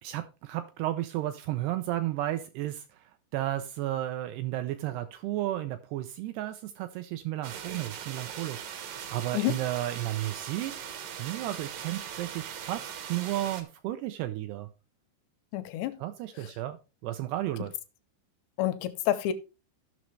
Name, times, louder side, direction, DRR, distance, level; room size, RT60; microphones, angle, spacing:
voice 1, 0.0-10.9 11.2-14.7 16.0-16.8 17.0-17.7, right 14 dB, 85° right, 2.3 m, -33 dB
sound 1, 7.4-13.6, right 9 dB, 70° right, 2.1 m, -40 dB
voice 2, 15.5-16.0 16.4-16.5 18.6-19.3, left 13 dB, 80° left, 2.6 m, -29 dB
15.5 x 6.2 x 3.2 m
omnidirectional pair, 5.4 m